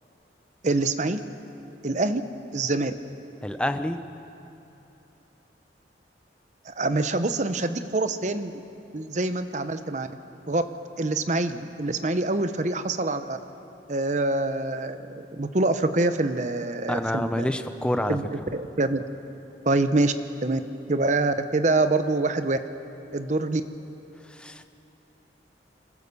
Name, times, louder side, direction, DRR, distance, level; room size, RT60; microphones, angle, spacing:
voice 1, 0.6-1.2 1.8-2.2 2.5-2.9 6.6-8.5 8.9-10.1 10.5-10.6 11.0-13.4 13.9-17.5 18.1-19.0 19.6-20.1 20.4-20.6 20.9-22.6 23.1-23.6, right 2 dB, 40° right, 10 dB, 0.8 m, -25 dB
voice 2, 3.4-4.0 16.9-18.2 24.3-24.7, left 1 dB, 5° left, 8 dB, 0.7 m, -27 dB
25.5 x 15.0 x 6.8 m, 2.9 s
head